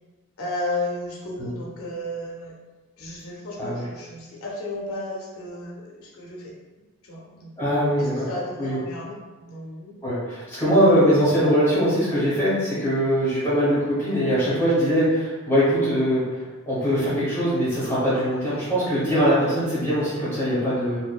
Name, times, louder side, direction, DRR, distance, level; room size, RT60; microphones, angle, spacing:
voice 1, 0.4-2.5 3.0-6.5 7.0-7.5 8.0-10.0, left 1 dB, 70° left, -3 dB, 0.5 m, -33 dB
voice 2, 7.6-8.3 8.6-8.8 10.0-21.0, equal, 10° left, -11 dB, 0.9 m, -22 dB
2.7 x 2.2 x 2.2 m, 1.3 s
head